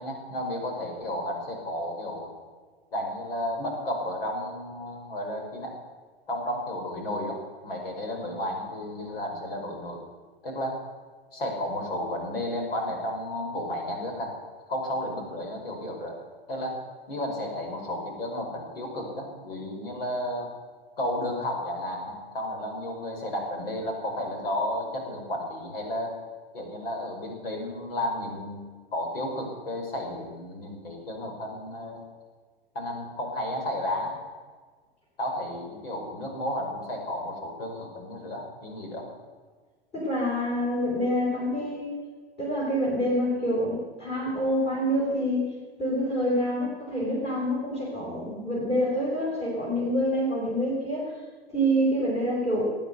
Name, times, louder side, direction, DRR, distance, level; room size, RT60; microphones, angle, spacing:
voice 1, 0.0-2.3 2.9-5.7 6.3-10.0 10.4-10.8 11.3-14.4 14.7-16.2 16.5-16.8 17.1-20.6 21.0-26.2 26.5-28.6 28.9-32.0 32.8-34.2 35.2-39.1, left 1 dB, 65° left, 2 dB, 5.3 m, -32 dB
voice 2, 39.9-41.9 42.4-51.0 51.5-52.6, equal, 20° left, -5 dB, 5.4 m, -27 dB
19.5 x 9.4 x 8.0 m, 1.5 s
figure-of-eight pair, 95°, 31 cm